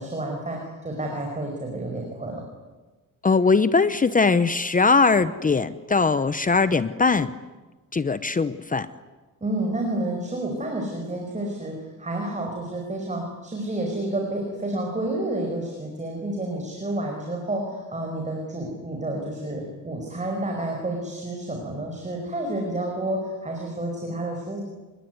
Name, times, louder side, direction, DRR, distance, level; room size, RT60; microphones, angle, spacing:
voice 1, 0.0-2.4 9.4-11.7 12.0-24.6, right 1 dB, 20° right, 1 dB, 5.5 m, -30 dB
voice 2, 3.2-7.3 7.9-8.9, left 4 dB, 25° left, 14 dB, 0.9 m, -20 dB
28.5 x 21.5 x 9.6 m, 1.2 s
cardioid pair, 140°, 33 cm